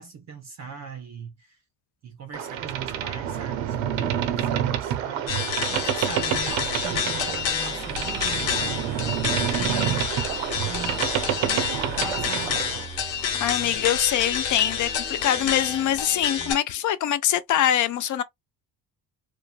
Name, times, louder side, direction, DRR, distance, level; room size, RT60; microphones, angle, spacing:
voice 1, 0.0-1.6 2.0-10.4 10.6-11.0 11.4-12.6, right 5 dB, 40° right, 0.5 m, -39 dB
Boat Water vehicle, 2.3-12.9, right 10 dB, 90° right, 0.7 m, -28 dB
sound 1, 5.3-16.5, left 7 dB, 85° left, 1.1 m, -29 dB
sound 2, 7.2-16.5, left 1 dB, 5° left, 0.9 m, -42 dB
voice 2, 13.4-18.2, left 11 dB, 45° left, 0.5 m, -24 dB
3.1 x 2.2 x 2.3 m
cardioid pair, 125°, 45 cm